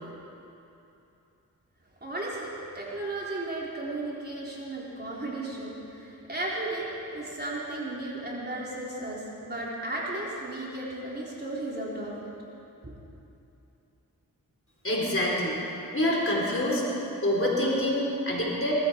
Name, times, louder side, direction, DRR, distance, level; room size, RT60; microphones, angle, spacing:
voice 1, 2.0-12.1, right 2 dB, 25° right, -5 dB, 4.1 m, -35 dB
voice 2, 14.8-15.6 15.9-16.8 17.2-18.7, left 1 dB, 35° left, -4 dB, 4.7 m, -26 dB
19.0 x 14.0 x 4.8 m, 2.8 s
cardioid pair, 40°, 36 cm